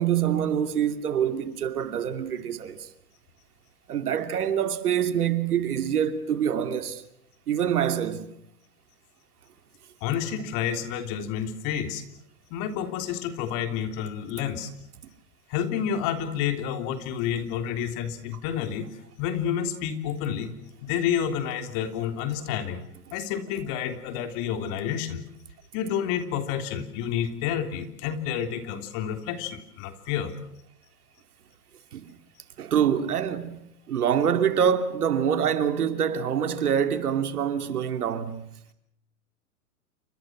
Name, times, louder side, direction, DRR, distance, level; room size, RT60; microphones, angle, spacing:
voice 1, 0.0-2.9 3.9-7.0 7.5-8.3 31.9-32.2 32.6-38.5, right 8 dB, 75° right, 2.8 m, -25 dB
voice 2, 10.0-12.0 12.5-14.7 15.5-18.9 19.2-20.5 20.8-22.8 23.1-25.2 25.7-30.3, left 9 dB, 40° left, 3.5 m, -29 dB
29.5 x 26.0 x 6.2 m
hypercardioid pair, 115°, 45 cm